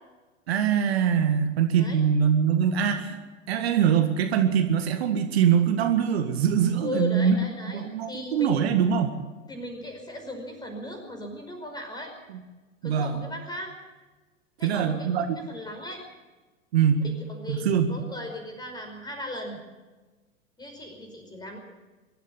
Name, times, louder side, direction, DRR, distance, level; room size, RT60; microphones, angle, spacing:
voice 1, 0.5-3.2 3.5-7.4 7.7-9.2 12.8-13.2 14.6-15.4 16.7-17.0 17.5-17.9, right 8 dB, 50° right, 6 dB, 1.9 m, -23 dB
voice 2, 6.8-8.6 9.5-12.1 12.8-13.8 14.6-15.1 15.3-16.0 17.0-19.6 20.6-21.6, left 1 dB, 10° left, 3 dB, 5.2 m, -37 dB
24.0 x 13.0 x 8.4 m, 1.2 s
figure-of-eight pair, 100°, 39 cm